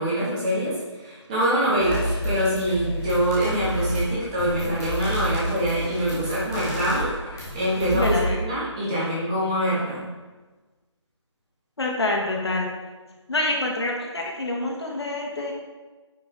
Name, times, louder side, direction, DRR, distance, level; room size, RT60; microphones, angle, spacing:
voice 1, 0.0-10.1, equal, 15° right, -9 dB, 1.7 m, -25 dB
sound 1, 1.4-1.5 1.8-8.2, equal, 5° left, 0.4 m, -30 dB
voice 2, 7.9-8.4 11.8-12.7 13.3-15.5, left 2 dB, 60° left, -1 dB, 1.7 m, -26 dB
9.2 x 4.9 x 3.8 m, 1.3 s
figure-of-eight pair, 165°, 16 cm